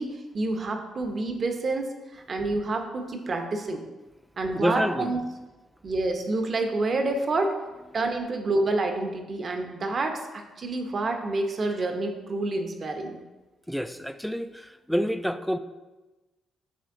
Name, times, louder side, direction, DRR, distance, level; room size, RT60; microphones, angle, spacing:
voice 1, 0.0-3.8 4.4-5.2 5.8-7.6 7.9-13.2, right 2 dB, 45° right, 5 dB, 0.8 m, -28 dB
voice 2, 4.5-5.1 13.7-15.6, equal, ahead, 11 dB, 0.3 m, -28 dB
8.1 x 3.3 x 3.8 m, 1.1 s
cardioid pair, 90°, 0 cm